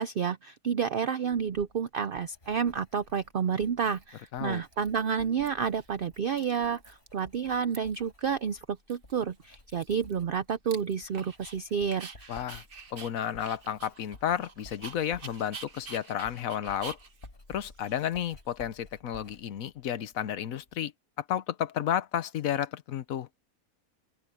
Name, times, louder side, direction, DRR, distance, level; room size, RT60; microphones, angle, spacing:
voice 1, 0.0-12.4, right 7 dB, 70° right, 0.5 m, -30 dB
Writing, 1.3-20.8, left 2 dB, 35° left, 3.9 m, -55 dB
Dog, 3.9-4.4 4.7-5.5 5.8-5.9 6.1-7.2 7.5-8.1 8.5-8.6 8.9-11.6 11.9-18.5, right 4 dB, 40° right, 1.5 m, -47 dB
voice 2, 12.3-12.6 12.9-17.0 17.5-20.9 21.2-23.3, left 10 dB, 70° left, 1.2 m, -32 dB
open air
omnidirectional pair, 1.6 m